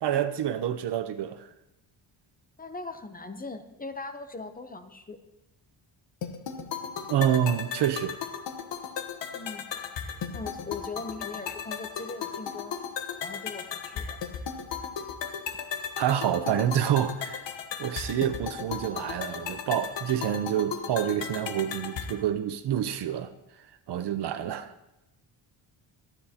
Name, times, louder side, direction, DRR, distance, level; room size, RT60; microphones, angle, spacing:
voice 1, 0.0-1.5 7.1-8.2 16.0-17.5 17.8-23.3 23.9-24.7, right 10 dB, 60° right, 0.8 m, -27 dB
voice 2, 2.6-5.2 9.3-9.7 10.3-12.8 13.2-14.2 18.1-18.3 24.4-24.5, left 3 dB, 20° left, 0.7 m, -40 dB
sound 1, 6.2-22.2, left 7 dB, 70° left, 1.2 m, -36 dB
25.0 x 10.0 x 2.9 m
cardioid pair, 145°, 46 cm